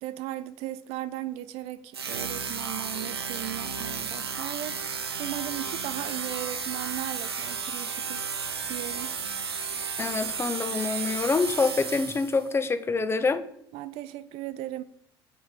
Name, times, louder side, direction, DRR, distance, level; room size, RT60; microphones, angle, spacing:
voice 1, 0.0-4.9 5.2-8.3 8.7-9.2 13.7-14.8, right 14 dB, 50° right, 0.5 m, -37 dB
sound 1, 1.9-12.5, right 6 dB, 80° right, 0.8 m, -33 dB
voice 2, 10.0-13.4, left 4 dB, 20° left, 0.7 m, -26 dB
6.0 x 5.7 x 6.5 m
figure-of-eight pair, 60°, 13 cm